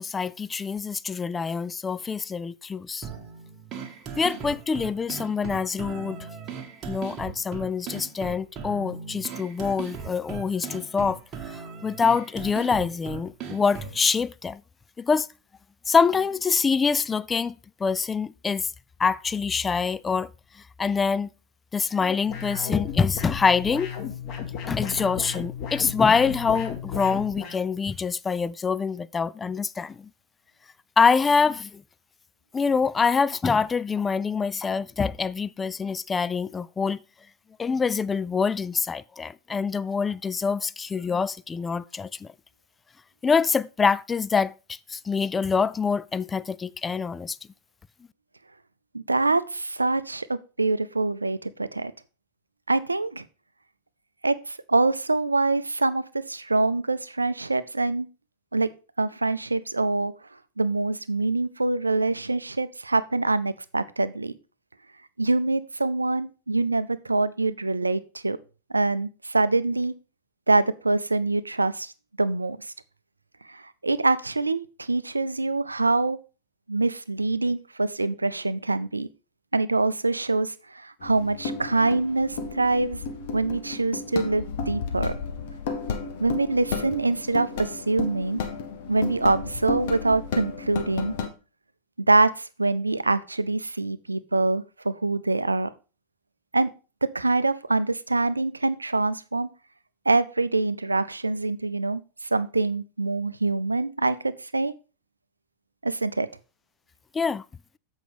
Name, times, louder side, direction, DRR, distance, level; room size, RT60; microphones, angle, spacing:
voice 1, 0.0-3.1 4.2-6.3 6.9-11.2 11.5-14.6 15.0-15.3 15.9-17.6 17.8-18.7 19.0-20.3 20.8-21.3 21.7-23.9 24.7-30.1 31.0-31.8 32.5-37.0 37.6-42.3 43.2-47.4 107.1-107.4, left 5 dB, 15° left, 0.3 m, -25 dB
sound 1, 3.0-14.0, right 6 dB, 30° right, 1.4 m, -38 dB
sound 2, 22.3-27.6, left 8 dB, 40° left, 1.9 m, -34 dB
voice 2, 48.9-51.9 52.7-53.2 54.2-58.1 58.5-58.7 59.0-60.1 60.6-64.3 65.2-68.4 68.7-69.9 70.5-71.9 72.2-72.7 73.5-76.2 76.7-79.1 79.5-83.0 83.3-85.1 86.2-88.4 88.9-91.1 92.1-95.7 96.5-96.7 97.0-99.5 100.1-104.7 105.8-106.3, right 3 dB, 80° right, 0.5 m, -25 dB
sound 3, 81.0-91.3, left 5 dB, 55° left, 1.1 m, -33 dB
7.6 x 5.3 x 4.9 m
figure-of-eight pair, 90°, 0 cm